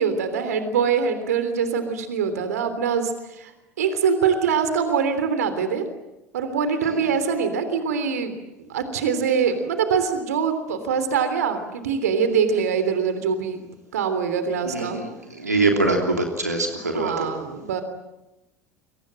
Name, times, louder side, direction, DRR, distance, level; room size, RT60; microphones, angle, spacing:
voice 1, 0.0-3.5 3.8-5.8 6.3-8.4 8.7-13.6 13.9-15.0 16.7-17.8, right 6 dB, 75° right, 9 dB, 3.3 m, -23 dB
voice 2, 14.7-15.1 15.4-17.3, right 2 dB, 90° right, 2 dB, 3.2 m, -23 dB
29.5 x 24.0 x 7.6 m, 0.97 s
figure-of-eight pair, 70°, 9 cm